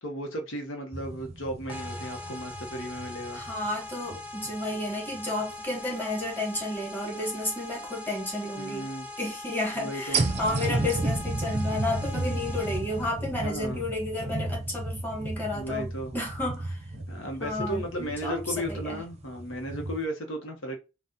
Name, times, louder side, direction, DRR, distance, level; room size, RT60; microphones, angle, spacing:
voice 1, 0.0-3.4 8.6-9.1 9.7-10.2 12.1-12.3 13.4-13.8 15.5-16.1 17.1-20.8, equal, 80° left, 1.0 m, -35 dB
sound 1, 0.9-4.7 5.1-5.2 10.1-20.0, right 2 dB, 35° right, 0.6 m, -33 dB
sound 2, 1.7-13.1, left 2 dB, 5° right, 0.9 m, -41 dB
voice 2, 3.3-8.9 9.2-16.8 17.4-18.4 18.7-19.0, left 1 dB, 10° left, 1.5 m, -32 dB
4.1 x 2.4 x 3.7 m
head